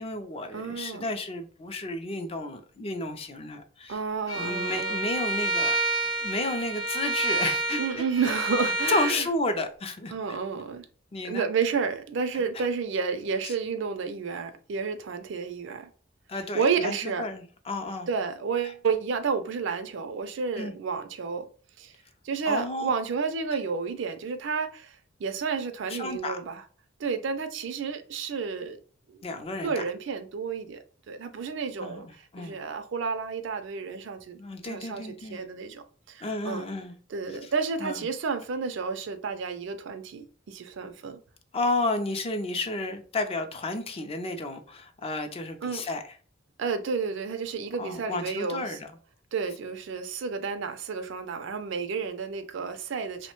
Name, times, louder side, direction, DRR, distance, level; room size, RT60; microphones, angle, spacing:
voice 1, 0.0-4.0 4.3-5.8 6.2-7.8 8.2-8.4 8.9-10.4 11.1-11.5 12.5-12.6 13.4-13.5 16.3-18.1 18.6-18.7 20.6-20.7 22.5-22.9 25.9-26.4 29.2-29.8 31.8-32.0 32.3-32.6 34.4-35.4 36.2-36.9 37.4-37.5 37.8-38.0 41.5-46.1 47.8-48.9, left 2 dB, 30° left, 0.4 m, -32 dB
voice 2, 0.5-1.1 3.9-5.1 7.8-9.2 10.1-10.8 11.2-15.9 16.5-17.3 18.1-21.5 21.8-21.9 22.2-24.9 25.2-26.6 27.0-28.8 29.1-29.2 29.6-32.1 32.4-36.6 37.1-41.2 45.6-45.8 46.6-48.8 49.3-53.3, right 5 dB, 65° right, 0.4 m, -31 dB
Bowed string instrument, 4.3-9.2, right 2 dB, 80° left, 0.7 m, -28 dB
3.0 x 2.1 x 2.9 m
head